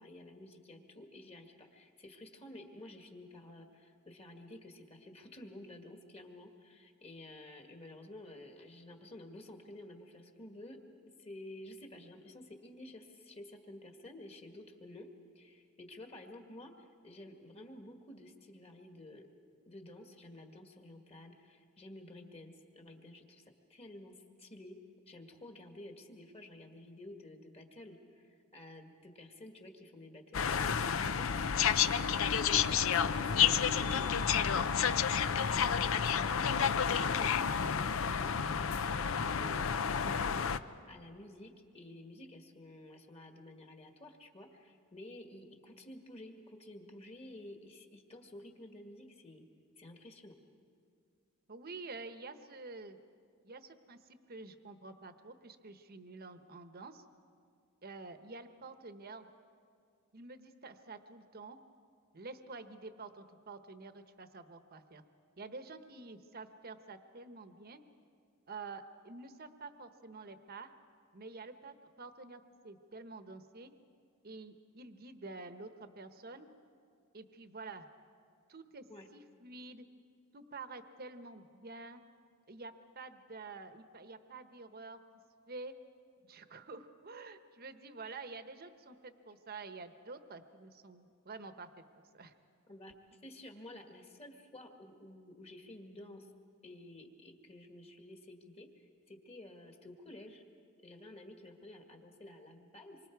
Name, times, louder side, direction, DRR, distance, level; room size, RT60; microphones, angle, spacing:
voice 1, 0.0-15.1 15.4-19.3 19.7-23.4 23.7-24.8 25.1-34.7 35.5-49.4 49.8-50.4 78.9-79.1 92.7-92.9 93.2-96.3 96.6-98.7 99.1-100.4 100.8-103.0, left 1 dB, 30° left, 3 dB, 1.9 m, -52 dB
sound 1, 30.3-40.6, left 7 dB, 75° left, 0.6 m, -30 dB
voice 2, 51.5-53.0 53.4-57.0 57.8-59.3 60.1-61.6 62.1-65.0 65.4-67.8 68.5-70.7 71.1-73.7 74.2-76.5 77.1-77.9 78.5-78.8 79.1-79.8 80.3-82.0 82.5-85.0 85.5-85.7 86.3-91.7 92.1-92.3, right 3 dB, 45° right, 9 dB, 1.0 m, -48 dB
26.5 x 24.0 x 4.7 m, 2.3 s
head